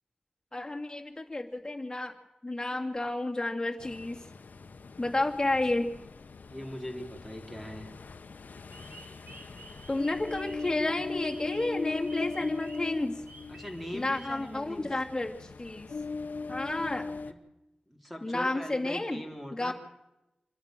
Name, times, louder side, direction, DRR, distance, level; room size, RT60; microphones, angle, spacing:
voice 1, 0.5-2.1 2.4-4.2 5.0-5.9 9.9-13.1 13.9-15.9 16.5-17.1 18.2-19.2 19.6-19.7, left 2 dB, 25° left, 2 dB, 2.4 m, -31 dB
Ocean, 3.8-17.3, left 4 dB, 80° left, 1.0 m, -40 dB
voice 2, 6.4-7.9 13.5-15.0 17.2-17.4 17.9-19.7, equal, 5° right, 3 dB, 3.7 m, -41 dB
sound 1, 8.5-14.6, right 2 dB, 70° right, 3.0 m, -52 dB
26.5 x 11.0 x 9.2 m, 0.95 s
wide cardioid pair, 85°, 3 cm